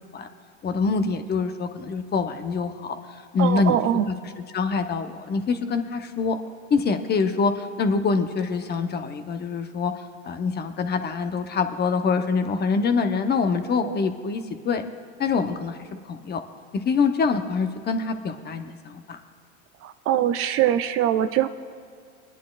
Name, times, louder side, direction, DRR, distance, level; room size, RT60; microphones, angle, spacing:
voice 1, 0.6-3.0 3.3-3.8 4.1-4.2 4.5-6.4 6.7-9.9 10.2-14.8 15.2-16.4 16.8-19.2, left 4 dB, 30° left, 8 dB, 0.8 m, -25 dB
voice 2, 3.4-4.1 13.8-14.0 19.8-21.5, right 11 dB, 40° right, 10 dB, 0.5 m, -23 dB
24.0 x 10.0 x 2.4 m, 2.3 s
supercardioid pair, 110°, 36 cm